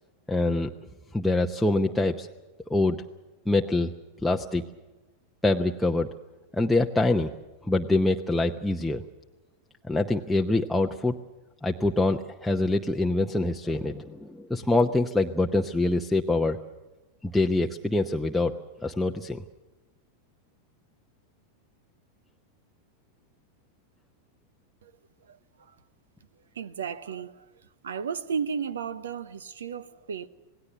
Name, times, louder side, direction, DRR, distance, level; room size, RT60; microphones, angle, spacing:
voice 1, 0.3-0.7 1.1-2.3 2.7-3.0 3.5-3.9 4.2-4.7 5.4-6.1 6.5-7.3 7.6-9.0 9.9-11.1 11.6-16.6 17.2-18.5 18.8-19.4, left 2 dB, 5° left, 0.8 m, -25 dB
voice 2, 25.3-25.8 26.5-27.5 27.8-30.3, right 6 dB, 65° right, 1.0 m, -34 dB
27.5 x 18.5 x 6.8 m
figure-of-eight pair, 90°, 0 cm